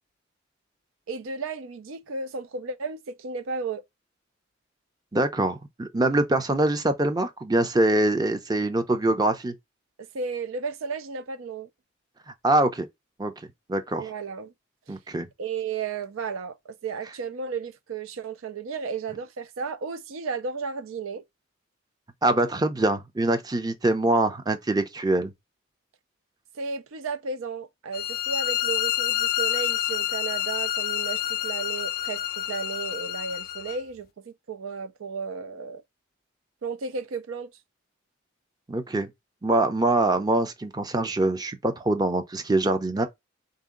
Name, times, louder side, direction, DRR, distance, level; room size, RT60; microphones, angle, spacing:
voice 1, 1.1-3.8 10.0-11.7 14.0-14.5 14.9-15.0 15.4-21.2 26.5-35.8 36.6-37.5, right 5 dB, 90° right, 0.4 m, -34 dB
voice 2, 5.1-9.5 12.4-12.9 13.2-13.3 13.7-14.0 14.9-15.3 22.2-25.3 38.7-39.1 39.4-43.1, right 2 dB, 20° right, 0.5 m, -24 dB
sound 1, 27.9-33.8, left 12 dB, 50° left, 0.4 m, -28 dB
3.7 x 2.7 x 3.6 m
head